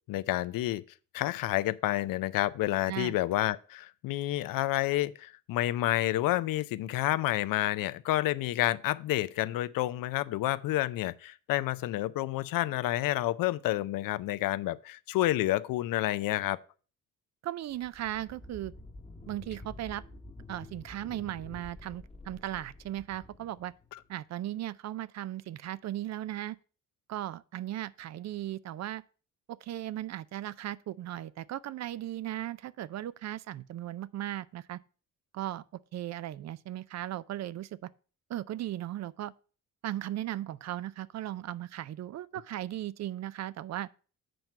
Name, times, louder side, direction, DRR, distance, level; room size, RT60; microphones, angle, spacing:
voice 1, 0.1-0.8 1.1-16.6 23.9-24.0, left 15 dB, 80° left, 0.5 m, -29 dB
voice 2, 17.4-18.7 19.3-20.0 20.5-23.7 24.1-26.6 27.1-29.0 29.5-34.8 35.3-35.6 35.9-37.7 38.3-39.3 39.8-43.9, right 13 dB, 55° right, 0.4 m, -37 dB
sound 1, 17.7-24.1, left 2 dB, 20° left, 1.0 m, -49 dB
7.8 x 4.5 x 5.3 m
cardioid pair, 95°, 34 cm